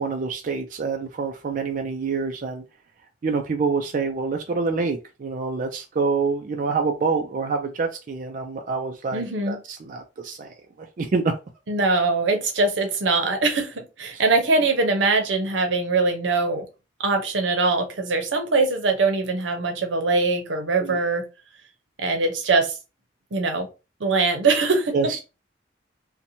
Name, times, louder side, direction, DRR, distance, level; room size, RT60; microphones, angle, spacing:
voice 1, 0.0-2.6 3.2-10.5 10.8-11.3 20.8-21.0 24.9-25.1, right 4 dB, 45° right, 0.3 m, -26 dB
voice 2, 9.1-9.6 11.7-16.7 17.0-21.2 22.0-22.8 23.3-23.7 24.0-25.1, right 3 dB, 85° right, 0.7 m, -22 dB
2.8 x 2.1 x 2.6 m
head